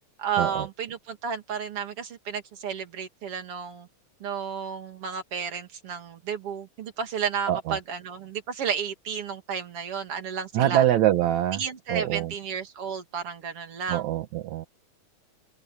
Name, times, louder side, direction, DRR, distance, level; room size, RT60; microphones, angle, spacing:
voice 1, 0.2-3.9 4.2-10.8 11.5-14.1, right 7 dB, 45° right, 3.3 m, -32 dB
voice 2, 7.5-7.8 10.5-11.6 11.9-12.3 13.9-14.7, right 12 dB, 65° right, 2.4 m, -24 dB
omnidirectional pair, 4.0 m